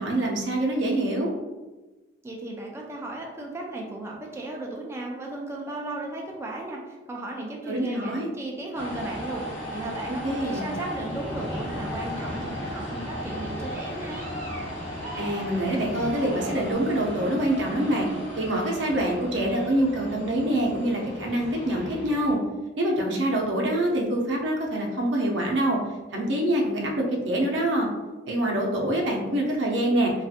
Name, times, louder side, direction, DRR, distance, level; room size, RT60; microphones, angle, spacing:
voice 1, 0.0-1.3 7.7-8.3 10.2-10.7 15.1-18.1 18.4-22.4 22.8-25.8 26.1-27.9 28.3-30.1, right 1 dB, 85° right, 0 dB, 0.6 m, -25 dB
voice 2, 2.2-14.3, right 2 dB, 15° right, -2 dB, 0.3 m, -35 dB
sound 1, 8.7-22.3, equal, 85° left, 1.0 m, -35 dB
sound 2, 11.1-12.5 13.0-16.7, right 1 dB, 50° right, 0.7 m, -44 dB
2.7 x 2.3 x 2.4 m, 1.2 s
head